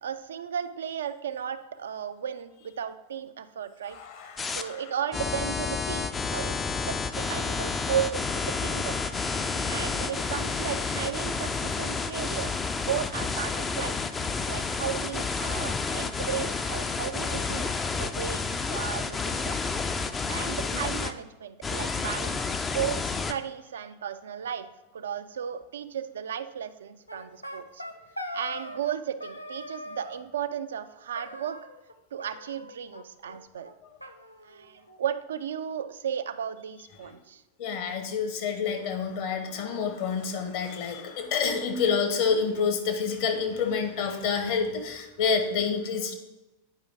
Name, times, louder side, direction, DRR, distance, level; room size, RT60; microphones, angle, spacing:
voice 1, 0.0-4.0 4.6-9.0 9.7-14.0 14.5-17.7 18.0-19.6 20.3-27.8 28.3-31.7 32.1-33.7 34.4-37.4, right 9 dB, 65° right, 11 dB, 0.3 m, -35 dB
voice 2, 3.9-4.8 37.6-46.1, left 5 dB, 50° left, 5 dB, 1.1 m, -28 dB
sound 1, 4.4-4.6 5.1-21.1 21.6-23.3, left 4 dB, 15° left, 0.4 m, -30 dB
sound 2, 27.1-29.0 29.2-30.2 31.2-31.9 32.2-33.0 33.3-33.4 33.6-33.7 34.0-35.1, left 1 dB, 90° left, 0.5 m, -41 dB
9.0 x 5.0 x 3.6 m, 1.0 s
figure-of-eight pair, 90°, 0 cm